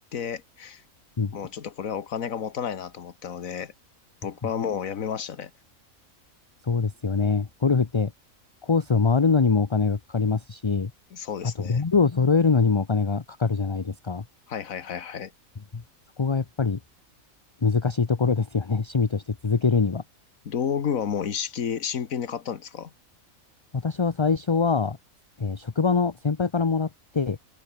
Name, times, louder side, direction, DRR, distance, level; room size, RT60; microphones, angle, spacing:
voice 1, 0.1-0.8 1.3-3.7 4.2-5.5 11.1-11.8 14.5-15.3 20.4-22.9, left 7 dB, 70° left, 1.7 m, -31 dB
voice 2, 6.6-8.1 8.6-10.9 11.4-14.2 15.7-15.8 16.2-16.8 17.6-20.0 23.7-25.0 25.4-27.4, left 4 dB, 30° left, 0.6 m, -23 dB
open air
omnidirectional pair, 1.5 m